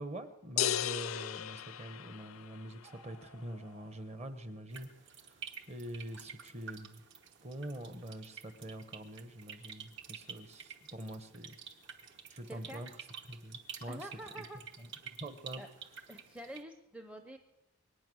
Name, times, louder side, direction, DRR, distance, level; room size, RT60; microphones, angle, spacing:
voice 1, 0.0-5.4 5.7-7.0 7.4-11.6 12.3-12.9 13.3-14.0 14.4-14.5 14.8-15.6, right 1 dB, 30° right, 10 dB, 1.0 m, -45 dB
sound 1, 0.6-2.6, left 11 dB, 70° left, 0.5 m, -35 dB
sound 2, 2.7-3.9, right 3 dB, 70° right, 3.8 m, -58 dB
sound 3, 4.7-16.6, right 7 dB, 55° right, 1.2 m, -50 dB
voice 2, 12.4-12.8 13.9-14.6 15.6-15.7 16.1-17.4, right 1 dB, 5° right, 5 dB, 0.6 m, -47 dB
24.0 x 9.2 x 6.3 m, 1.0 s
head